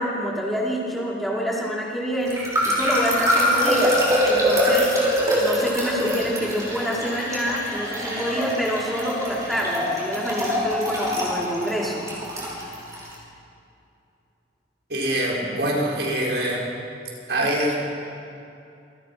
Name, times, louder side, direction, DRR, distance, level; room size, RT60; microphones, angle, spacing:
voice 1, 0.0-4.9 5.4-12.0, equal, ahead, -5 dB, 4.9 m, -27 dB
sound 1, 2.2-13.1, equal, 20° right, 6.2 m, -23 dB
voice 2, 14.9-16.6 17.3-17.9, right 1 dB, 70° right, -3 dB, 6.4 m, -24 dB
28.0 x 24.0 x 6.1 m, 2.6 s
head